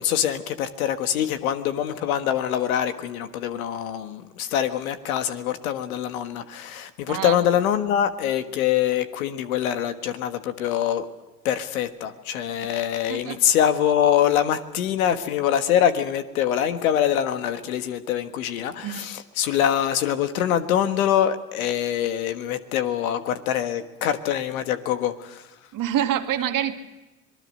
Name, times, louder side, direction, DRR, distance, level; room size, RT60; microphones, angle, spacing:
voice 1, 0.0-11.0 11.4-25.4, left 10 dB, 80° left, 9 dB, 1.5 m, -24 dB
voice 2, 25.7-26.7, right 10 dB, 50° right, 6 dB, 2.1 m, -26 dB
26.0 x 20.0 x 6.5 m, 1.1 s
hypercardioid pair, 75°, 42 cm